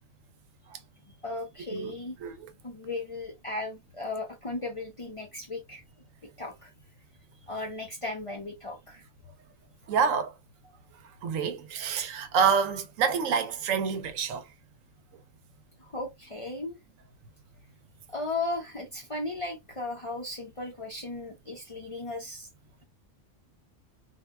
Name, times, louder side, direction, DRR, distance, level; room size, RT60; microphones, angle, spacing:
voice 1, 1.2-2.2 2.6-5.8 6.4-6.7 7.5-9.0 15.8-16.8 18.1-22.5, left 2 dB, 35° left, 0.5 m, -36 dB
voice 2, 9.9-10.3 11.2-14.4, right 6 dB, 90° right, 1.0 m, -27 dB
3.3 x 2.2 x 2.3 m
omnidirectional pair, 1.3 m